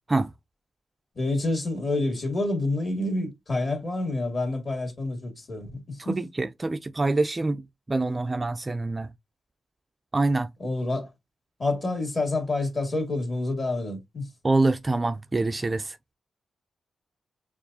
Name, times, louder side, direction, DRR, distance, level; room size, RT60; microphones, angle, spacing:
voice 1, 1.2-6.2 10.6-11.1 11.6-14.2, left 2 dB, 35° left, 2.0 m, -28 dB
voice 2, 6.1-7.6 7.9-9.1 10.1-10.5 14.4-16.0, right 2 dB, 20° right, 0.3 m, -25 dB
6.9 x 2.4 x 2.6 m
cardioid pair, 115°, 0 cm